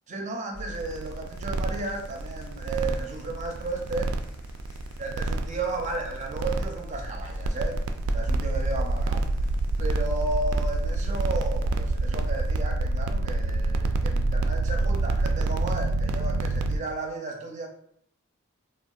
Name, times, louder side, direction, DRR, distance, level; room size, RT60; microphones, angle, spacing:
voice 1, 0.1-4.1 5.0-7.8 8.1-9.3 9.8-17.7, right 2 dB, 35° right, 1 dB, 0.5 m, -34 dB
sound 1, 0.5-12.4, equal, 50° left, 0.5 m, -39 dB
sound 2, 0.7-16.8, right 2 dB, 85° right, 0.3 m, -27 dB
3.5 x 2.3 x 2.3 m, 0.67 s
head